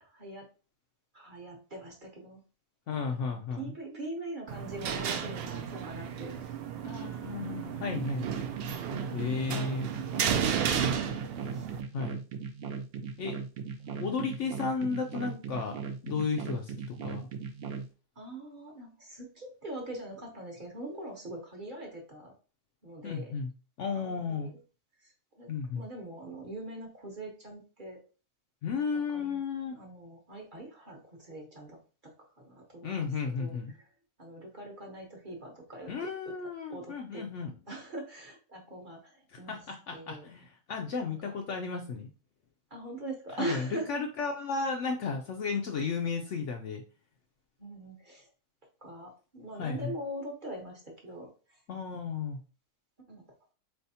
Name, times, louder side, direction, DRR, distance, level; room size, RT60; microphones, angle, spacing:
voice 1, 0.0-0.5 1.1-2.4 2.9-7.1 8.9-9.8 11.5-11.7 12.3-12.4 13.9-14.0 18.2-22.3 22.8-23.3 24.0-24.5 25.0-25.1 25.4-28.0 28.9-29.4 29.7-32.1 32.4-33.0 33.4-33.9 34.2-36.1 36.7-37.2 37.7-39.6 39.9-40.3 41.0-41.3 42.7-43.9 47.6-48.3 48.8-51.3 53.1-53.2, right 1 dB, 35° right, 0 dB, 1.0 m, -42 dB
voice 2, 2.9-3.7 6.8-8.3 9.1-9.9 11.9-12.2 13.2-13.4 14.0-15.8 16.0-17.3 23.0-23.5 23.8-24.5 25.5-25.8 28.6-29.7 32.8-33.7 35.9-37.5 39.3-42.1 43.4-46.8 49.6-49.9 51.7-52.4, left 5 dB, 65° left, 3 dB, 0.8 m, -34 dB
sound 1, 4.5-11.8, right 8 dB, 85° right, 0.5 m, -33 dB
sound 2, 7.9-17.9, right 6 dB, 65° right, 0.9 m, -38 dB
4.3 x 3.4 x 2.7 m, 0.34 s
omnidirectional pair, 1.6 m